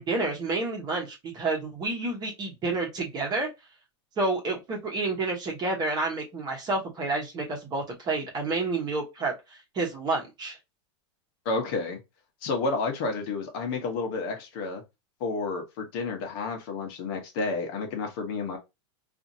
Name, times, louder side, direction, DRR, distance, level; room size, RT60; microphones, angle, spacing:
voice 1, 0.0-3.5 4.2-10.6, right 3 dB, 25° right, 1.0 m, -29 dB
voice 2, 11.4-12.0 12.4-14.8 15.2-18.6, left 3 dB, 50° left, 1.0 m, -30 dB
2.7 x 2.5 x 2.6 m
supercardioid pair, 145°, 15 cm